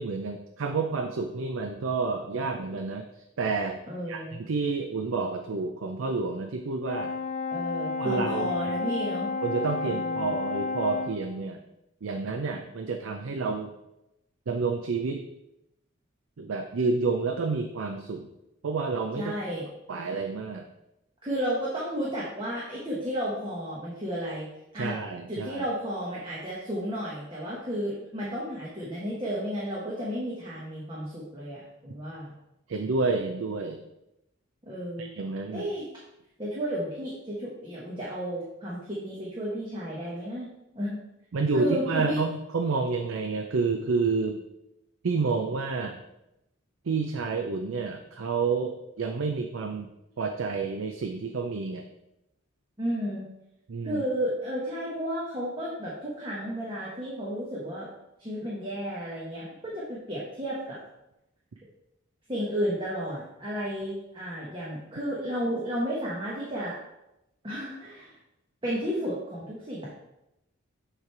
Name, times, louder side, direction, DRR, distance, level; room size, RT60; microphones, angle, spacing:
voice 1, 0.0-3.1 3.4-3.8 4.1-7.1 8.0-8.5 9.4-11.6 12.0-13.7 14.5-15.3 16.4-18.3 18.6-19.3 19.9-20.7 24.7-25.6 32.7-33.8 35.0-35.7 41.3-44.4 45.0-46.0 46.9-49.9 50.2-51.8 53.7-54.0, right 4 dB, 85° right, 4 dB, 0.5 m, -29 dB
voice 2, 3.9-4.4 7.5-9.3 9.8-10.3 19.1-19.7 21.2-24.5 24.7-24.9 25.3-32.3 34.7-35.1 35.5-35.9 36.4-40.5 40.7-41.0 41.5-42.2 52.8-53.3 53.8-57.9 58.2-60.8 62.3-66.7 67.4-68.2 68.6-69.9, equal, 25° right, -6 dB, 1.1 m, -32 dB
Brass instrument, 6.9-11.3, left 3 dB, 35° left, 0.6 m, -31 dB
7.3 x 3.3 x 4.6 m, 0.89 s
head